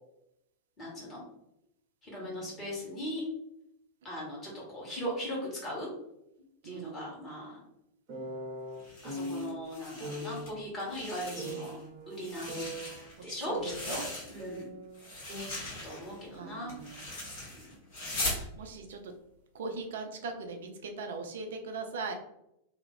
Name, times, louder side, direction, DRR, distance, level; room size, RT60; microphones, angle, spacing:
voice 1, 0.8-1.2 2.0-3.2 4.0-5.9 6.6-7.6 9.0-11.8 12.1-12.6 13.2-14.0 14.3-14.7 15.8-16.7 17.5-17.8, equal, 25° left, -4 dB, 1.5 m, -38 dB
voice 2, 2.2-2.7 6.6-7.0 11.2-11.6 13.5-14.1 16.3-17.0 18.6-19.1 19.5-22.1, right 4 dB, 60° right, 4 dB, 0.4 m, -40 dB
sound 1, 8.1-9.5 10.0-10.5 11.4-13.0 13.5-15.0 15.3-15.4, equal, 35° right, 1.0 m, -40 dB
sound 2, 8.8-10.5 10.8-11.8 12.1-14.6 14.9-18.5, left 1 dB, 50° left, 1.4 m, -40 dB
2.8 x 2.3 x 3.4 m, 0.82 s
figure-of-eight pair, 90°, 0 cm